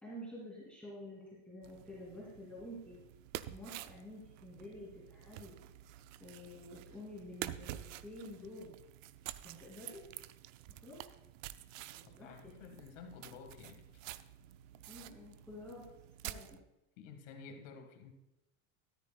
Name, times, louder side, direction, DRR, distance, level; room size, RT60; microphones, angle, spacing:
voice 1, 0.0-3.0 3.5-5.6 6.2-8.7 9.4-10.1 10.8-11.0 11.8-12.3 14.9-15.8 16.2-16.6, left 1 dB, 5° left, -7 dB, 2.7 m, -49 dB
sound 1, 1.6-16.6, right 14 dB, 85° right, 0.6 m, -49 dB
voice 2, 12.2-13.9 17.0-18.1, left 5 dB, 70° left, 5 dB, 1.9 m, -52 dB
13.5 x 13.5 x 2.3 m, 0.92 s
supercardioid pair, 165°, 38 cm